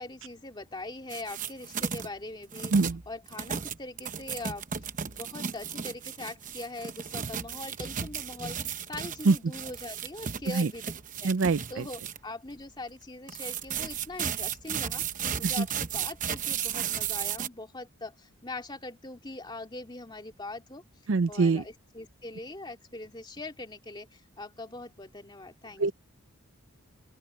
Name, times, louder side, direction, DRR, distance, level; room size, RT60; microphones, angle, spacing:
voice 1, 0.0-2.7 3.1-4.6 5.1-11.3 11.7-15.0 15.4-20.8 21.3-25.9, left 2 dB, 20° left, 2.6 m, -42 dB
sound 1, 1.1-2.1 2.5-12.2 13.3-17.5, right 8 dB, 35° right, 0.9 m, -35 dB
voice 2, 11.2-11.8 15.6-15.7 21.1-21.6 25.8-25.9, right 4 dB, 60° right, 0.5 m, -24 dB
open air
head